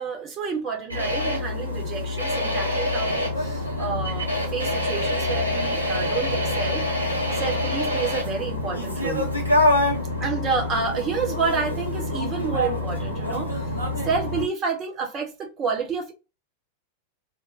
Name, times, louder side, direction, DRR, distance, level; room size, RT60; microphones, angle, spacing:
voice 1, 0.0-6.8 7.3-9.3 10.2-13.6 14.0-16.1, right 5 dB, 30° right, 0.9 m, -29 dB
sound 1, 0.9-14.5, left 1 dB, 90° right, 0.7 m, -26 dB
2.5 x 2.2 x 2.4 m
figure-of-eight pair, 90°, 0 cm